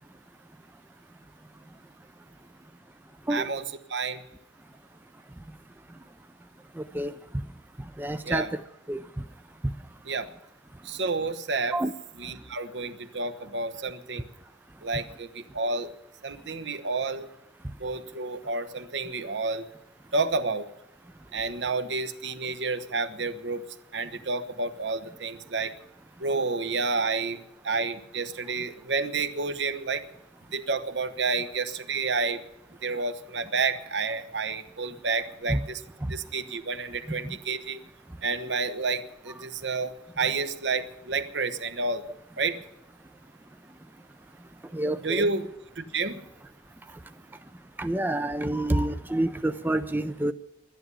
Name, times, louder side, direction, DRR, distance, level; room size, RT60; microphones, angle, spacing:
voice 1, 3.3-3.6 3.9-4.2 8.2-8.5 10.0-10.3 10.8-11.8 12.2-14.3 14.8-15.9 16.2-17.3 17.8-19.7 20.1-20.7 21.3-23.6 23.9-25.7 26.2-30.0 30.5-32.4 32.8-35.8 36.1-37.8 38.2-42.0 42.4-42.6 45.0-45.5 45.8-46.2, right 4 dB, 65° right, 11 dB, 1.0 m, -30 dB
voice 2, 8.0-8.5 8.9-9.0 11.7-11.9 35.5-35.6 44.7-45.3 47.8-50.3, right 1 dB, 10° right, 9 dB, 0.4 m, -27 dB
12.5 x 10.5 x 9.7 m, 0.85 s
head